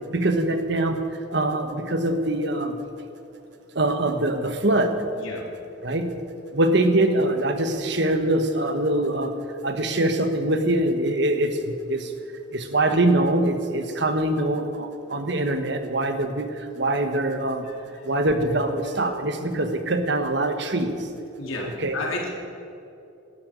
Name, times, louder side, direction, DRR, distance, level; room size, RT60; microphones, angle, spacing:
voice 1, 0.1-1.0 1.3-2.8 3.7-5.0 5.8-6.1 6.5-9.3 9.6-12.1 12.5-16.5 16.8-17.6 18.0-20.9 21.8-22.0, right 1 dB, 60° right, 7 dB, 1.3 m, -23 dB
voice 2, 17.6-18.1 21.4-22.3, left 2 dB, 90° left, -1 dB, 3.4 m, -32 dB
18.5 x 12.5 x 5.2 m, 2.7 s
head